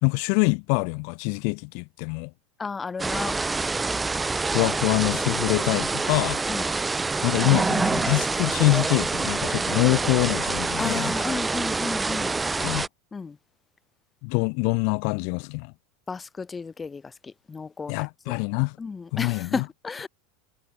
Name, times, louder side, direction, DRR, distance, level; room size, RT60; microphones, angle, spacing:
voice 1, 0.0-2.3 4.5-6.4 7.2-11.1 12.6-12.9 14.2-15.7 17.9-18.8 19.1-19.6, left 40 dB or more, 60° left, 0.7 m, -25 dB
voice 2, 2.6-3.3 6.5-6.8 10.8-12.4 13.1-13.4 16.1-18.1 18.8-20.1, left 5 dB, 20° left, 1.8 m, -33 dB
sound 1, 3.0-12.9, right 3 dB, 15° right, 0.5 m, -26 dB
hypercardioid pair, 85°, 0 cm